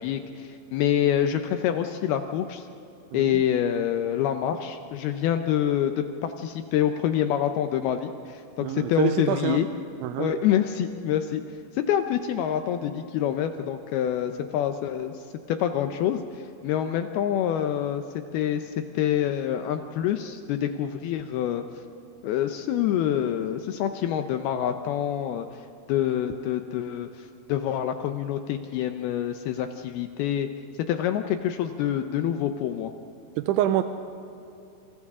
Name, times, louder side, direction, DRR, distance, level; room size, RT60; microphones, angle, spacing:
voice 1, 0.0-2.7 3.1-9.7 10.2-11.4 11.7-18.0 18.3-21.6 22.2-25.5 25.9-30.5 30.9-32.9, left 10 dB, 80° left, 7 dB, 2.2 m, -26 dB
voice 2, 3.1-3.4 8.6-9.6 10.0-10.3 33.4-33.8, right 13 dB, 90° right, 8 dB, 3.0 m, -26 dB
28.5 x 28.0 x 3.7 m, 2.7 s
omnidirectional pair, 5.3 m